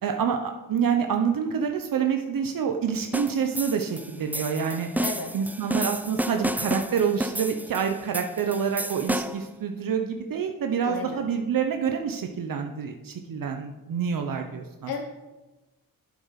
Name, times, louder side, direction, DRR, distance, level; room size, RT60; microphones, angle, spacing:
voice 1, 0.0-4.9 5.3-14.9, right 7 dB, 65° right, 5 dB, 0.9 m, -27 dB
sound 1, 3.1-9.5, right 1 dB, 5° right, 0.4 m, -31 dB
voice 2, 5.0-5.3 10.8-11.2 14.9-15.0, left 5 dB, 85° left, 3 dB, 1.0 m, -33 dB
9.2 x 7.5 x 5.8 m, 1.1 s
cardioid pair, 95°, 36 cm